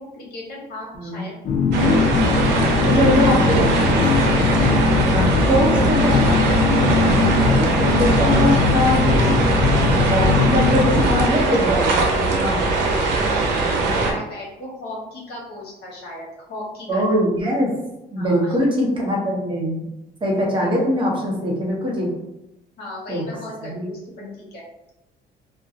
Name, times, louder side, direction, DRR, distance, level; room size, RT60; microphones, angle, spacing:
voice 1, 0.1-1.3 4.3-4.7 14.0-17.2 18.2-18.6 22.8-24.0 24.3-24.6, left 2 dB, 70° left, -3 dB, 1.0 m, -36 dB
sound 1, 1.4-11.3, left 4 dB, 45° left, 0.4 m, -20 dB
sound 2, 1.7-14.1, right 3 dB, 90° right, 0.6 m, -21 dB
voice 2, 2.8-4.3 5.1-7.0 7.4-9.0 10.1-12.6 16.9-17.7 18.1-19.8 20.2-22.1 23.1-23.3 23.6-23.9 24.2-24.3, equal, 30° right, -3 dB, 0.8 m, -22 dB
2.4 x 2.1 x 2.7 m, 0.90 s
cardioid pair, 110°, 17 cm